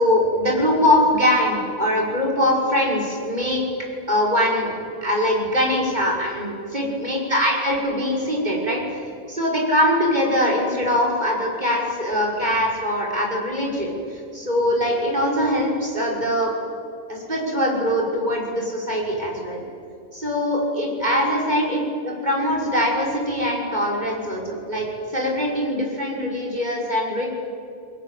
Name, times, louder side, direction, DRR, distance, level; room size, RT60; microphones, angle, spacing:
voice 1, 0.0-3.6 4.1-4.7 5.0-9.0 9.3-16.5 17.1-19.6 20.1-27.3, left 1 dB, 40° right, -2 dB, 6.3 m, -22 dB
29.5 x 21.0 x 8.5 m, 2.5 s
omnidirectional pair, 1.2 m